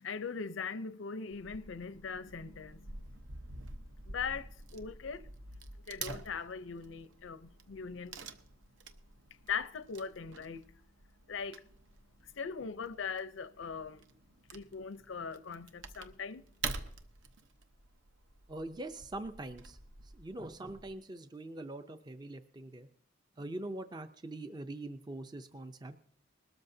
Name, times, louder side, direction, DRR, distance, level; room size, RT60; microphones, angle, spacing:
voice 1, 0.0-3.0 4.1-5.3 5.9-8.2 9.4-10.7 11.3-11.6 12.4-14.0 14.5-16.4, left 5 dB, 80° left, 0.6 m, -40 dB
Wood / Tearing, 1.3-20.9, right 4 dB, 80° right, 0.9 m, -48 dB
voice 2, 18.5-19.8 20.0-22.9 23.4-26.0, right 2 dB, 20° right, 0.5 m, -43 dB
21.0 x 13.0 x 2.7 m
head